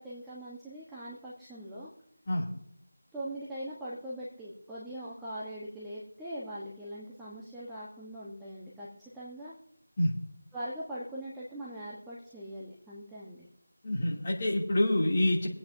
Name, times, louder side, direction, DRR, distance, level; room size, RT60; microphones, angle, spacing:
voice 1, 0.0-1.9 3.1-9.5 10.5-13.4, right 1 dB, 5° right, -9 dB, 1.1 m, -41 dB
voice 2, 13.8-15.5, left 1 dB, 30° left, -3 dB, 2.7 m, -27 dB
24.5 x 8.8 x 2.7 m, 0.72 s
figure-of-eight pair, 165°, 0 cm